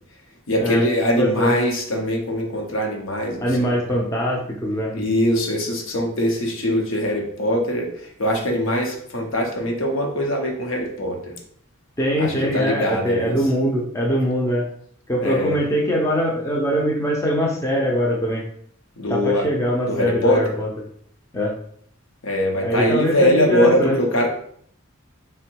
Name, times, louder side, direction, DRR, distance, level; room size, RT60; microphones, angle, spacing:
voice 1, 0.5-3.5 4.9-11.3 12.2-13.4 15.2-15.5 19.0-19.5 19.9-20.4 22.2-24.3, equal, 75° left, 1 dB, 0.8 m, -22 dB
voice 2, 1.2-1.6 3.4-4.9 12.0-14.7 15.1-18.4 19.1-20.7 21.3-21.5 22.6-24.0, equal, 15° left, -2 dB, 0.5 m, -22 dB
3.6 x 2.2 x 4.4 m, 0.64 s
head